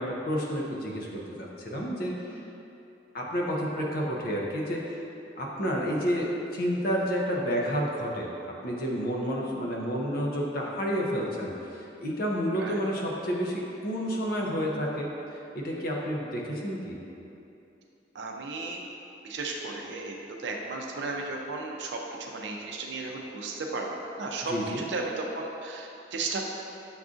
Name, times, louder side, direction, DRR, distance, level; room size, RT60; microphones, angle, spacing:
voice 1, 0.0-2.2 3.1-5.0 5.4-8.3 8.6-17.0 24.5-24.9, equal, 55° left, -2 dB, 0.6 m, -30 dB
voice 2, 18.1-18.8 19.2-20.1 20.4-26.4, right 3 dB, 75° right, 0 dB, 0.5 m, -34 dB
6.9 x 2.5 x 2.5 m, 2.9 s
head